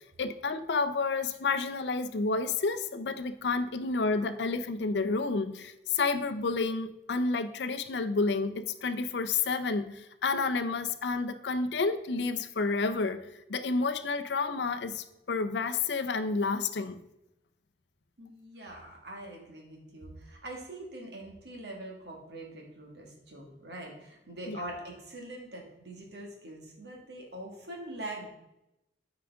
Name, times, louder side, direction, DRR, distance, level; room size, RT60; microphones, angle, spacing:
voice 1, 0.2-13.2 13.5-17.0 24.5-24.6, left 4 dB, 75° left, 10 dB, 0.5 m, -30 dB
voice 2, 18.2-28.3, right 1 dB, 70° right, 0 dB, 1.8 m, -43 dB
8.6 x 4.9 x 3.5 m, 0.89 s
head